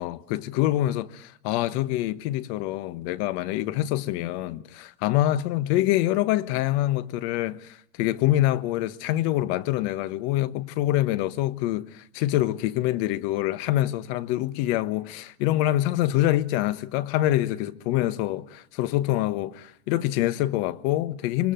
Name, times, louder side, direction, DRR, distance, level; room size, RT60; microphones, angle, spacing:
voice 1, 0.0-21.5, left 14 dB, 50° left, 1.3 m, -25 dB
26.5 x 22.0 x 9.1 m
supercardioid pair, 140°, 42 cm